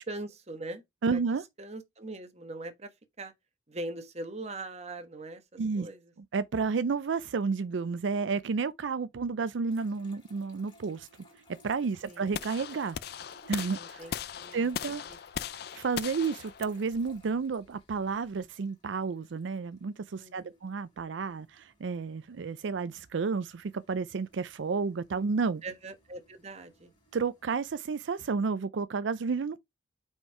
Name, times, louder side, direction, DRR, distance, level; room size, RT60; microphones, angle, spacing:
voice 1, 0.0-0.8 1.1-1.2 1.6-3.3 3.7-6.1 12.0-12.3 13.7-15.2 20.2-20.6 25.6-26.9, right 2 dB, 35° right, 1.3 m, -42 dB
voice 2, 1.0-1.4 5.6-5.9 6.3-11.1 11.6-13.0 13.5-14.0 14.5-15.0 15.7-25.6 27.1-29.6, right 5 dB, 80° right, 0.4 m, -31 dB
sound 1, 9.7-27.6, left 2 dB, 25° left, 2.8 m, -62 dB
sound 2, 12.3-18.4, left 8 dB, 55° left, 0.4 m, -39 dB
5.6 x 4.5 x 4.6 m
head